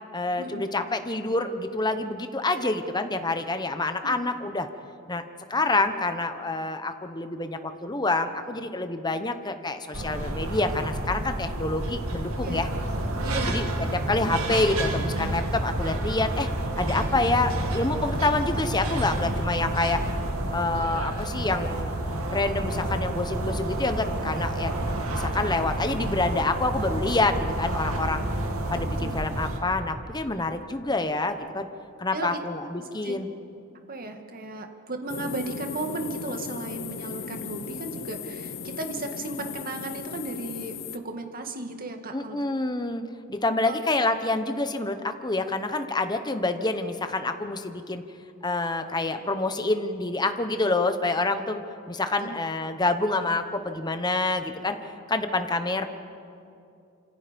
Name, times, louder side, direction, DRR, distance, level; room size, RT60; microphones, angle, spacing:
voice 1, 0.1-4.7 5.1-5.2 5.5-12.7 13.5-13.6 13.9-16.5 16.8-20.0 20.5-21.9 22.3-24.7 25.1-28.2 28.7-31.7 32.0-33.3 42.1-43.0 43.3-48.0 48.4-51.6 51.9-54.8 55.1-55.9, left 2 dB, 20° left, 8 dB, 1.1 m, -27 dB
sound 1, 9.9-29.6, right 1 dB, 70° right, 2.7 m, -29 dB
voice 2, 13.2-13.7 29.0-29.2 32.1-32.4 33.0-33.1 33.9-42.4 43.7-43.8 52.2-52.3, right 2 dB, 40° right, 4 dB, 2.2 m, -35 dB
sound 2, 35.1-41.0, left 6 dB, 60° left, 0.9 m, -37 dB
29.0 x 27.0 x 5.3 m, 2.6 s
head